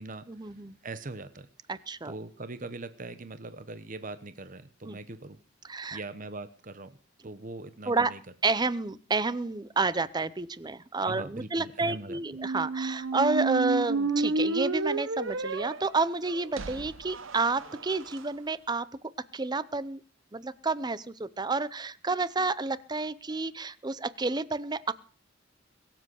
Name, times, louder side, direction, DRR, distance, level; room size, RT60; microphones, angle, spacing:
voice 1, 0.3-0.8 1.7-2.1 4.8-5.0 5.7-6.0 7.9-8.1 8.4-18.9 19.3-20.0 20.3-24.9, right 3 dB, 20° right, 17 dB, 0.6 m, -30 dB
voice 2, 0.8-1.5 2.0-5.4 5.9-7.0 7.2-8.2 11.1-12.2, right 3 dB, 40° right, 12 dB, 1.0 m, -41 dB
sound 1, 12.3-18.2, right 3 dB, 75° right, 0.9 m, -31 dB
22.5 x 7.7 x 6.4 m, 0.42 s
head